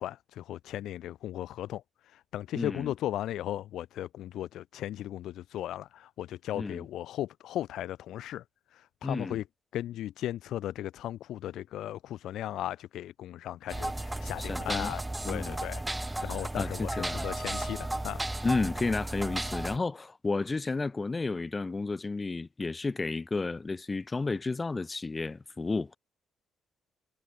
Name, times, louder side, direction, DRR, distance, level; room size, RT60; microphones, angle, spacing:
voice 1, 0.0-8.4 8.7-9.4 9.7-18.2, left 13 dB, 80° left, 2.8 m, -37 dB
voice 2, 2.5-2.9 6.5-6.9 9.0-9.4 14.4-14.9 15.2-15.6 16.1-17.3 18.4-26.0, left 3 dB, 25° left, 1.3 m, -32 dB
sound 1, 13.7-19.8, right 1 dB, 10° right, 2.1 m, -34 dB
cardioid pair, 90°, 0 cm